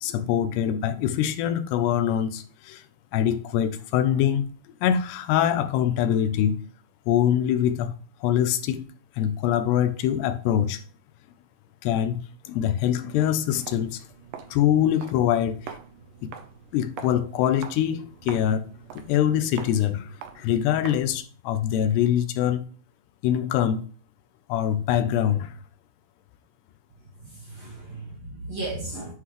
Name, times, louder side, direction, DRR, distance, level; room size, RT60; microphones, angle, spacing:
voice 1, 0.0-2.8 3.1-4.5 4.8-6.6 7.1-7.9 8.2-8.9 9.2-10.8 11.8-14.1 14.5-15.8 16.2-16.3 16.7-22.6 23.2-23.9 24.5-25.5, left 10 dB, 90° left, 2.9 m, -24 dB
Walk footsteps, 13.6-21.2, right 8 dB, 75° right, 2.1 m, -44 dB
voice 2, 27.2-29.1, right 2 dB, 55° right, 1.9 m, -35 dB
9.6 x 5.8 x 3.2 m
omnidirectional pair, 4.7 m